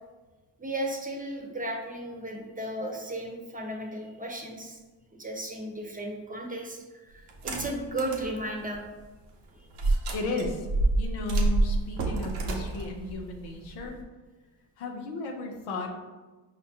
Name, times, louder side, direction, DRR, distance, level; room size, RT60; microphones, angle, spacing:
voice 1, 0.6-4.8 5.1-8.8 9.5-9.7, right 1 dB, 15° right, 1 dB, 0.8 m, -35 dB
sound 1, 7.3-8.3 8.7-8.8 9.7-14.0, right 2 dB, 85° right, 0.7 m, -28 dB
voice 2, 10.1-10.7 11.0-14.0 14.8-15.9, left 2 dB, 90° left, 1 dB, 0.7 m, -34 dB
5.1 x 2.2 x 2.7 m, 1.2 s
hypercardioid pair, 45°, 48 cm